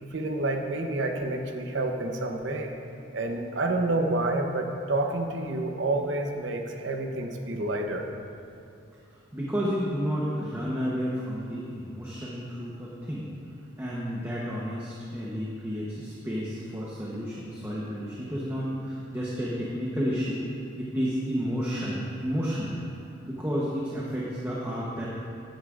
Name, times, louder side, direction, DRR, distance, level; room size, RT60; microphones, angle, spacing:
voice 1, 0.0-2.7 3.1-8.1, right 2 dB, 70° right, 4 dB, 0.8 m, -29 dB
voice 2, 9.3-13.3 13.8-20.4 20.8-22.8 23.2-25.1, equal, 10° right, -6 dB, 0.9 m, -31 dB
14.0 x 9.4 x 2.5 m, 2.6 s
head